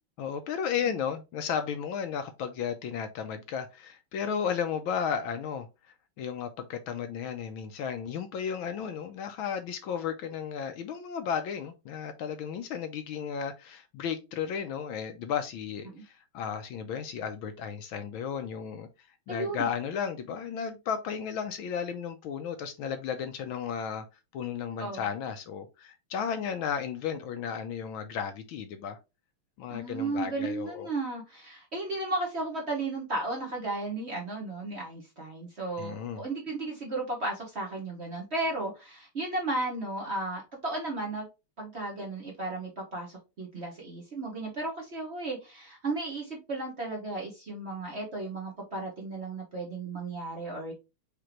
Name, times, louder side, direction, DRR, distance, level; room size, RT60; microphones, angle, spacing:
voice 1, 0.2-5.7 6.2-18.9 19.3-24.0 24.3-29.0 29.6-30.9 35.8-36.2, left 7 dB, 75° left, 1.4 m, -34 dB
voice 2, 19.3-19.7 24.8-25.0 29.7-41.3 41.6-50.7, right 2 dB, 35° right, 1.2 m, -34 dB
5.1 x 3.3 x 3.0 m
omnidirectional pair, 2.4 m